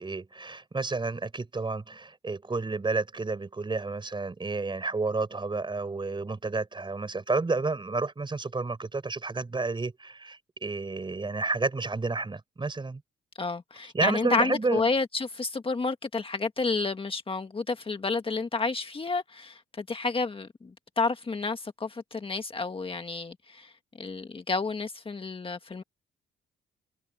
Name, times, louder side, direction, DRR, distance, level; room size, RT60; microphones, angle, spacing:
voice 1, 0.0-13.0 13.9-14.9, right 3 dB, 25° right, 4.5 m, -30 dB
voice 2, 13.4-23.7 24.0-25.8, left 3 dB, 25° left, 1.6 m, -30 dB
cardioid pair, 90°, 20 cm